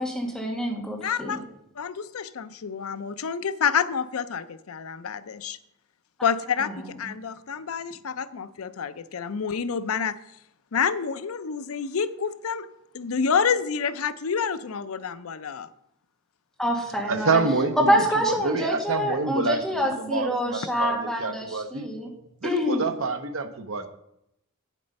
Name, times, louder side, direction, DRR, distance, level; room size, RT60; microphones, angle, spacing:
voice 1, 0.0-1.4 6.6-6.9 16.6-17.4 17.8-22.1 22.4-22.9, equal, ahead, 0 dB, 1.7 m, -26 dB
voice 2, 1.0-1.4 1.8-5.6 6.2-10.2 10.7-12.7 12.9-15.7, left 6 dB, 85° left, 14 dB, 0.5 m, -28 dB
voice 3, 17.1-21.9 22.4-23.9, right 4 dB, 70° right, 7 dB, 0.8 m, -27 dB
8.7 x 7.4 x 5.3 m, 0.81 s
head